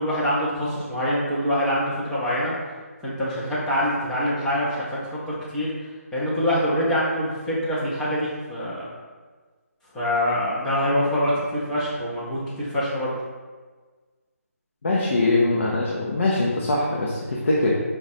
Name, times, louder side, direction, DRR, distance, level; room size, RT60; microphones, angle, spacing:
voice 1, 0.0-2.5 3.0-5.0 5.3-5.7 6.1-8.9 9.9-13.2, equal, 5° left, -8 dB, 0.6 m, -25 dB
voice 2, 14.8-17.7, left 2 dB, 55° left, -4 dB, 0.7 m, -22 dB
5.2 x 2.3 x 4.1 m, 1.4 s
hypercardioid pair, 165°, 8 cm